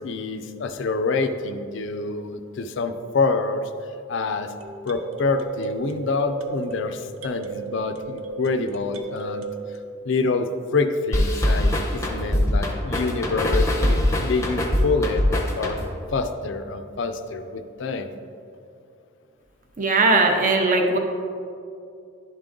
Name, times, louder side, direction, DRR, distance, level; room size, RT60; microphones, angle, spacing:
voice 1, 0.0-3.7 4.1-4.5 4.8-9.5 10.0-15.8 16.1-18.1, left 3 dB, 60° left, 8 dB, 0.4 m, -26 dB
sound 1, 1.8-1.9 4.6-9.8, right 2 dB, 75° right, 0.6 m, -35 dB
sound 2, 11.1-16.1, equal, 15° left, 0.7 m, -22 dB
voice 2, 19.8-21.0, right 3 dB, 35° right, 3 dB, 0.6 m, -19 dB
11.0 x 3.8 x 3.6 m, 2.5 s
head